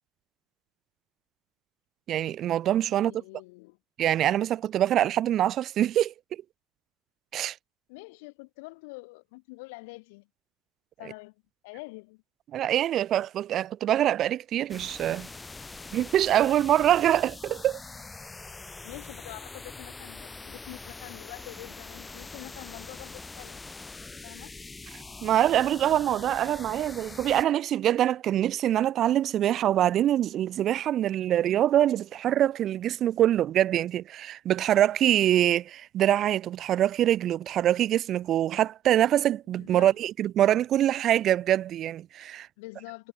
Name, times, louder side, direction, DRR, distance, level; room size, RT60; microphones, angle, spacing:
voice 1, 2.1-3.1 4.0-6.1 7.3-7.6 12.5-15.3 15.9-17.8 25.2-42.5, right 11 dB, 45° right, 1.0 m, -24 dB
voice 2, 2.9-3.8 7.9-10.3 11.0-11.3 11.6-12.2 18.8-23.6 24.2-24.5 39.6-39.9 42.6-43.1, left 27 dB, 80° left, 6.3 m, -45 dB
sound 1, 14.7-27.4, left 3 dB, 15° left, 5.3 m, -43 dB
supercardioid pair, 110°, 0 cm